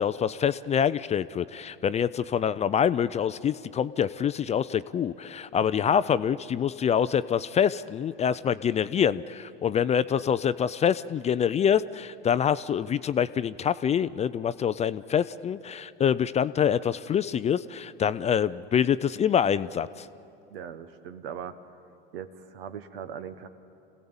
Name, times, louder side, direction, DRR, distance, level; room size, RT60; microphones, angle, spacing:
voice 1, 0.0-20.1, left 8 dB, 25° left, 15 dB, 0.4 m, -25 dB
voice 2, 5.6-6.0 20.5-21.6 22.1-23.5, right 8 dB, 80° right, 10 dB, 1.2 m, -40 dB
27.0 x 16.5 x 7.2 m, 2.7 s
hypercardioid pair, 90°, 29 cm